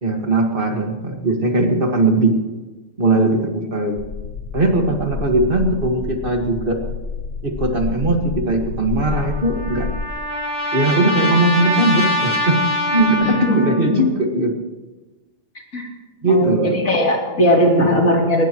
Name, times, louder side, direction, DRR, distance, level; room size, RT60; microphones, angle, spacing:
voice 1, 0.0-2.3 3.0-4.0 4.5-6.8 7.4-9.9 10.7-12.6 12.9-14.6 16.2-16.7, right 2 dB, 40° right, 3 dB, 1.9 m, -19 dB
sound 1, 4.0-10.1, left 5 dB, 50° left, 1.1 m, -29 dB
Trumpet, 9.1-13.9, left 1 dB, 25° right, 6.6 m, -23 dB
voice 2, 13.2-14.0 15.7-15.9 16.2-18.5, equal, 80° left, -1 dB, 3.3 m, -18 dB
22.0 x 19.5 x 3.0 m, 1.2 s
omnidirectional pair, 1.4 m